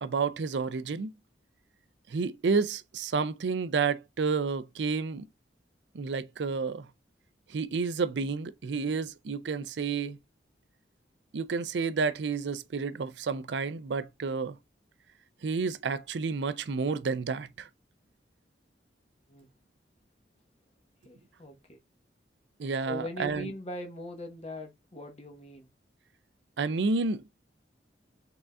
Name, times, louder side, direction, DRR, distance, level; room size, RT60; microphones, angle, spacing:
voice 1, 0.0-1.1 2.1-5.2 5.9-6.9 7.5-10.2 11.3-14.6 15.4-17.7 22.6-23.5 26.6-27.2, right 4 dB, 85° right, 0.5 m, -30 dB
voice 2, 21.0-21.8 22.9-25.7, left 1 dB, 35° left, 1.1 m, -41 dB
4.9 x 3.8 x 2.3 m
head